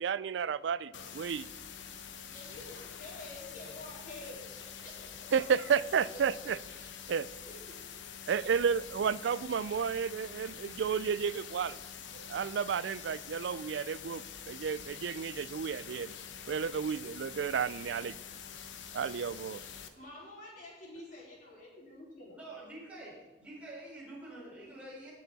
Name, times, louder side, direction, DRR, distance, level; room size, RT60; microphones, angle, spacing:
voice 1, 0.0-1.5 5.3-6.6 7.1-7.3 8.3-11.8 12.1-16.1 16.5-18.2 18.9-19.6, right 7 dB, 75° right, 0.4 m, -32 dB
sound 1, 0.9-19.9, left 7 dB, 90° left, 0.9 m, -46 dB
voice 2, 2.3-4.4 4.7-5.3 6.3-6.4 7.4-7.9 20.0-22.4, left 2 dB, 45° left, 3.6 m, -48 dB
voice 3, 22.3-25.1, right 1 dB, 10° right, 4.5 m, -47 dB
18.0 x 7.0 x 4.1 m
head